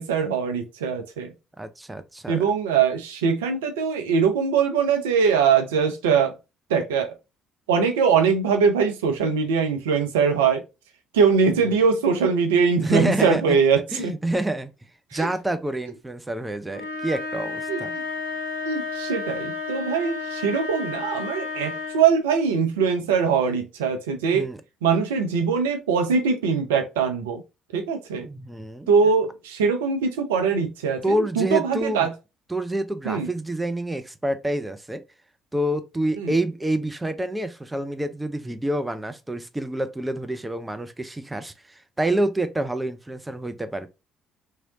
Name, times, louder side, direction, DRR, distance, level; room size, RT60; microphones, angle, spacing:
voice 1, 0.0-1.3 2.3-6.4 6.7-7.2 7.7-10.6 11.1-14.1 15.1-15.3 17.7-18.0 18.6-24.5 24.8-27.4 27.7-28.3 28.9-32.1 33.0-33.3 36.2-36.3, right 6 dB, 75° right, 0.5 m, -22 dB
voice 2, 1.6-2.4 12.8-13.6 13.9-14.7 15.1-17.9 24.3-24.6 28.2-28.9 31.0-32.1 32.5-35.0 35.5-43.9, right 1 dB, 15° right, 0.5 m, -27 dB
sound 1, 16.7-22.2, left 4 dB, 90° left, 0.7 m, -32 dB
3.0 x 2.7 x 2.8 m
figure-of-eight pair, 50°, 0 cm